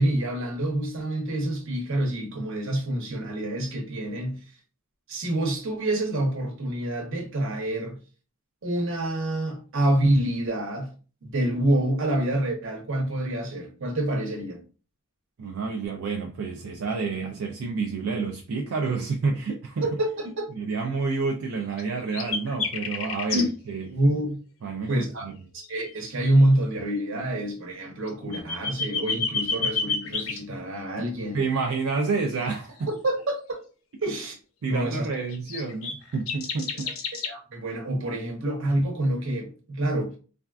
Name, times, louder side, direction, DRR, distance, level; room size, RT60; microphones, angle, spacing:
voice 1, 0.0-4.4 5.1-8.0 8.6-10.9 11.2-14.6 19.8-20.5 23.3-23.5 23.9-24.4 24.9-25.3 25.5-31.4 32.9-33.6 34.0-34.4 34.7-35.1 37.3-40.1, right 1 dB, 65° right, 0.9 m, -27 dB
voice 2, 15.4-19.9 20.5-23.9 24.6-25.3 31.0-31.1 31.3-32.9 34.6-36.9, right 4 dB, 85° right, 0.4 m, -29 dB
sound 1, 21.8-21.9 22.1-23.5 25.6-25.9 26.2-26.3 28.1-30.4 35.3-37.3, left 5 dB, 80° left, 0.6 m, -29 dB
3.3 x 2.4 x 2.3 m
head